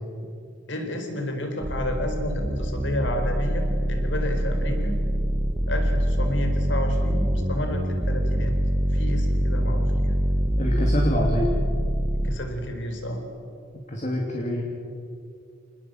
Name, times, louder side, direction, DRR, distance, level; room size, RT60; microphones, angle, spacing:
voice 1, 0.7-5.0 5.7-8.5 8.9-10.1 12.2-13.2, left 1 dB, 60° left, 5 dB, 4.3 m, -31 dB
sound 1, 1.6-12.4, equal, 20° right, 1.1 m, -24 dB
voice 2, 10.6-11.5 13.9-14.6, equal, 35° left, -1 dB, 2.8 m, -26 dB
27.5 x 19.5 x 7.9 m, 2.5 s
head